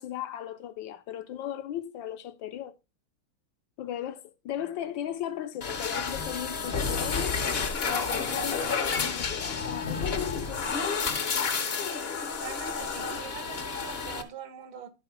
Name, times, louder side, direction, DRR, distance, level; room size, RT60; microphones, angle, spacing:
voice 1, 0.0-2.8 3.8-7.5 7.9-11.0, left 11 dB, 70° left, 1.3 m, -37 dB
sound 1, 5.6-14.2, left 5 dB, 45° left, 0.8 m, -30 dB
voice 2, 12.4-14.9, right 8 dB, 75° right, 1.7 m, -43 dB
11.5 x 4.3 x 4.5 m
omnidirectional pair, 2.3 m